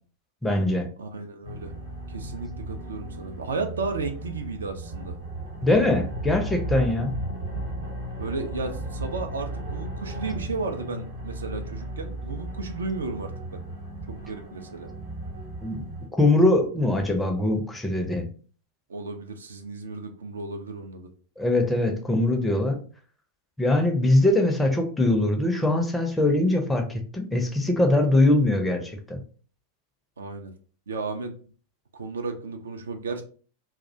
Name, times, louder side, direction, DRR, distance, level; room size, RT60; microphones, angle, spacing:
voice 1, 0.4-0.9 5.6-7.1 15.6-15.9 16.2-18.3 21.4-22.8 23.6-29.2, left 2 dB, 10° left, 3 dB, 0.4 m, -22 dB
voice 2, 1.0-1.7 2.1-5.2 8.2-13.6 14.1-14.9 18.9-21.1 30.2-30.5 30.9-31.4 31.9-33.2, right 3 dB, 70° right, 5 dB, 0.3 m, -34 dB
sound 1, 1.4-16.1, right 1 dB, 55° right, 0.8 m, -35 dB
2.3 x 2.0 x 2.6 m, 0.41 s
figure-of-eight pair, 90°, 0 cm